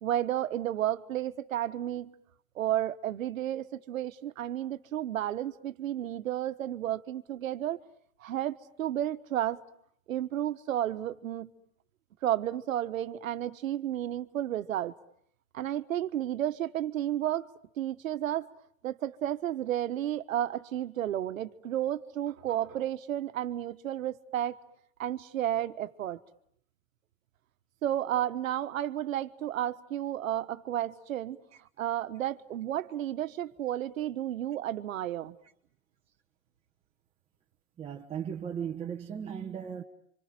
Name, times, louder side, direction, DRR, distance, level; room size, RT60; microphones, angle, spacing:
voice 1, 0.0-2.1 2.5-7.8 8.2-9.6 10.1-11.5 12.2-14.9 15.5-17.5 17.8-18.5 18.8-24.6 25.0-26.2 27.8-31.4 31.8-35.4, right 12 dB, 80° right, 1.4 m, -32 dB
voice 2, 37.8-39.8, right 8 dB, 15° right, 1.2 m, -36 dB
30.0 x 26.0 x 7.7 m
hypercardioid pair, 140°, 39 cm